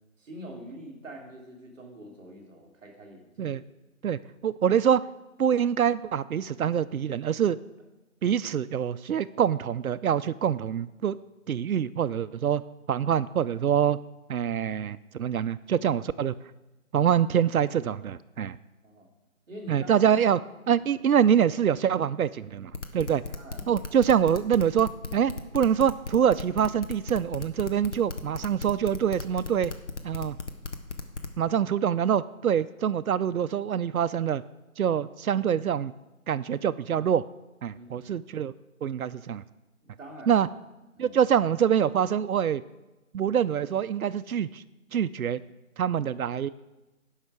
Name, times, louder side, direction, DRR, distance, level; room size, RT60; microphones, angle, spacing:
voice 1, 0.2-3.6 18.8-19.1 19.5-20.1 20.7-20.9 23.1-23.8 37.7-38.0 39.8-40.4 40.9-41.2, equal, 5° right, -15 dB, 1.4 m, -45 dB
voice 2, 4.0-5.0 5.4-7.6 8.2-11.2 11.5-12.6 12.9-14.0 14.3-16.3 16.9-18.6 19.7-23.2 23.7-29.7 30.0-30.4 31.4-34.4 34.8-35.9 36.3-37.3 37.6-38.5 38.8-39.4 40.3-40.5 41.0-42.6 43.1-44.6 44.9-45.4 45.8-46.5, right 8 dB, 90° right, 15 dB, 0.5 m, -25 dB
sound 1, 22.7-31.4, left 3 dB, 55° left, 1.0 m, -36 dB
17.0 x 5.6 x 4.8 m, 1.0 s
figure-of-eight pair, 170°, 42 cm